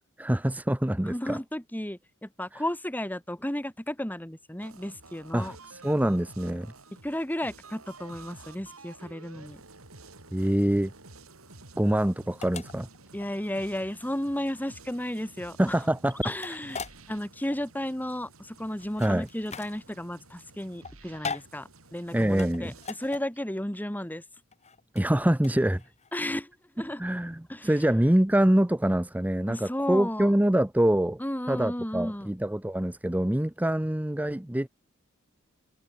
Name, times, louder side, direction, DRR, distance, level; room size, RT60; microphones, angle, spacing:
voice 1, 0.2-1.4 2.5-2.6 5.3-6.7 10.3-10.9 11.8-12.9 15.6-16.2 19.0-19.3 22.1-22.7 24.9-25.8 27.0-31.2 31.5-34.7, right 1 dB, 10° right, 0.7 m, -25 dB
voice 2, 1.0-5.6 7.0-9.6 13.1-15.8 16.2-16.8 17.1-24.2 26.1-27.0 27.5-27.7 29.5-30.3 31.2-32.3, left 1 dB, 10° left, 1.9 m, -33 dB
sound 1, 4.6-23.2, right 3 dB, 80° right, 6.6 m, -51 dB
sound 2, 10.7-26.1, left 5 dB, 30° left, 2.3 m, -42 dB
open air
head